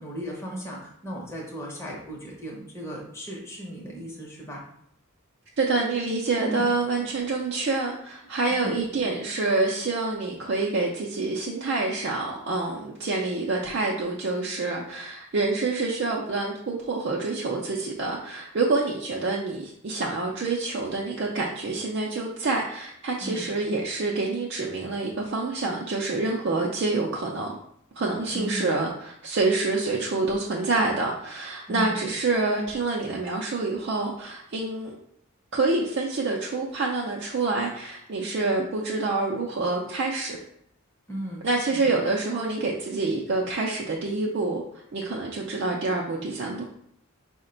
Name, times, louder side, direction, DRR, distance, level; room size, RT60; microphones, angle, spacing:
voice 1, 0.0-4.6 6.4-6.7 8.5-8.8 23.2-23.5 28.3-28.8 31.7-32.0 41.1-42.0, equal, 10° left, -3 dB, 0.7 m, -36 dB
voice 2, 5.6-27.5 28.0-35.0 35.5-40.4 41.4-44.6 44.9-46.6, right 3 dB, 55° right, -2 dB, 0.4 m, -27 dB
5.0 x 2.1 x 3.8 m, 0.71 s
head